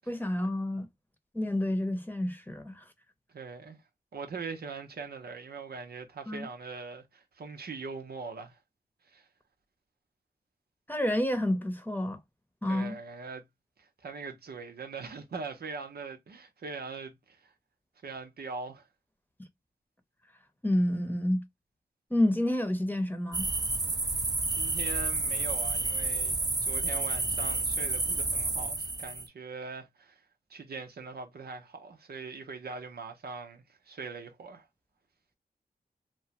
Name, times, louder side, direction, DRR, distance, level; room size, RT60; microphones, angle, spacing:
voice 1, 0.1-0.9 1.3-2.8 6.3-6.5 10.9-12.2 12.6-13.0 20.6-21.5 22.1-23.5, left 1 dB, 10° left, 0.8 m, -29 dB
voice 2, 3.3-3.8 4.1-8.6 9.1-9.3 12.7-13.4 13.8-17.5 18.0-18.8 24.5-30.2 30.5-34.7, right 4 dB, 90° right, 0.7 m, -41 dB
sound 1, 23.3-29.3, right 2 dB, 25° right, 0.4 m, -30 dB
3.0 x 2.2 x 2.8 m
cardioid pair, 50°, 16 cm